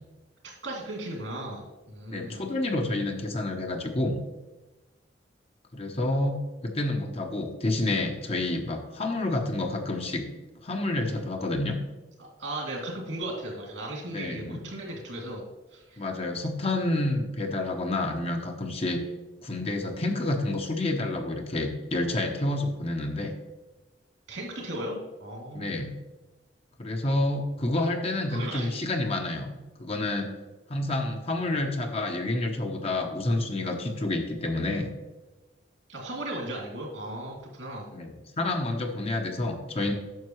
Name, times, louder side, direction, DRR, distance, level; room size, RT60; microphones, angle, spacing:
voice 1, 0.4-2.5 12.2-15.4 15.7-16.0 24.3-25.8 28.3-28.7 35.9-37.9, right 1 dB, 80° right, -2 dB, 2.8 m, -36 dB
voice 2, 2.1-4.2 5.7-10.3 10.6-11.8 14.1-14.6 16.0-19.0 19.4-23.3 25.5-25.9 26.8-29.5 29.8-30.3 30.7-34.9 37.9-39.9, left 2 dB, 35° left, 3 dB, 0.9 m, -29 dB
9.3 x 6.6 x 3.1 m, 1.1 s
head